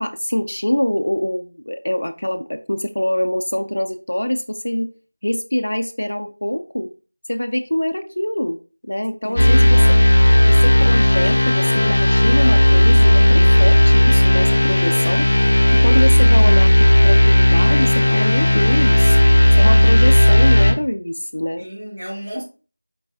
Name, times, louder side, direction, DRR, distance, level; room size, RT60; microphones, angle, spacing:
voice 1, 0.0-4.9 5.2-6.9 7.3-8.6 8.8-10.0 10.5-15.3 15.8-19.2 19.5-21.7, left 1 dB, 65° left, 0.4 m, -24 dB
voice 2, 9.2-9.7 21.6-22.4, equal, 65° right, 2.3 m, -33 dB
sound 1, 9.4-20.7, left 1 dB, 40° left, 0.9 m, -13 dB
4.4 x 2.5 x 4.1 m
figure-of-eight pair, 180°, 0 cm